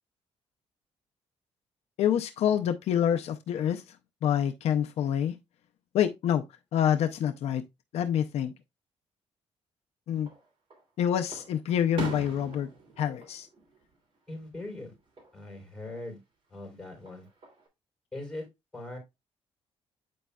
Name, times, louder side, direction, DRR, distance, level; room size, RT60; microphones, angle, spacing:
voice 1, 2.0-4.0 4.2-5.4 5.9-6.5 6.7-7.6 7.9-8.5 10.1-10.3 11.0-12.7 13.0-13.5, left 9 dB, 70° left, 0.5 m, -27 dB
Fireworks, 10.1-10.8 11.3-14.4 14.8-15.3 16.9-17.7, right 2 dB, 50° right, 3.0 m, -40 dB
voice 2, 14.3-14.9 15.3-16.2 16.5-17.3 18.1-18.5 18.7-19.0, left 2 dB, 5° left, 3.8 m, -40 dB
8.5 x 5.0 x 2.3 m
cardioid pair, 130°, 11 cm